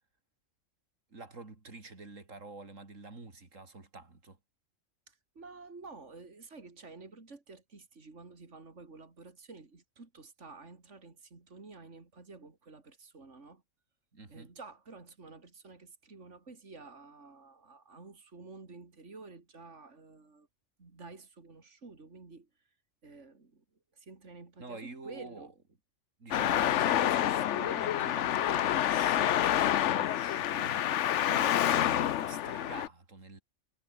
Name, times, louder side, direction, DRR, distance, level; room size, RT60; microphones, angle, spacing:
voice 1, 1.1-4.4 14.1-14.5 24.6-25.5 26.2-33.4, right 3 dB, 90° right, 3.9 m, -47 dB
voice 2, 5.1-13.6 14.3-20.5 20.8-22.5 23.0-23.6 23.9-25.5, right 3 dB, 70° right, 3.3 m, -51 dB
Traffic noise roadway noise, 26.3-32.9, left 11 dB, 70° left, 1.0 m, -28 dB
omnidirectional pair, 1.3 m